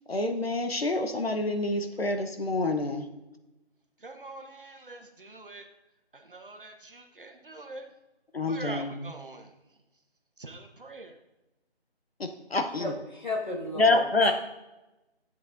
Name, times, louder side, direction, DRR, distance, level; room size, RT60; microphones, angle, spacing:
voice 1, 0.1-3.1 8.3-9.1 12.2-12.9 13.8-14.3, left 2 dB, 65° left, 6 dB, 1.0 m, -27 dB
voice 2, 4.0-5.7 6.1-7.9 8.4-9.5 10.4-11.2, right 2 dB, 55° right, 5 dB, 1.1 m, -44 dB
voice 3, 12.8-14.3, left 2 dB, 45° left, -1 dB, 1.8 m, -34 dB
13.0 x 8.2 x 2.6 m, 0.99 s
figure-of-eight pair, 170°, 32 cm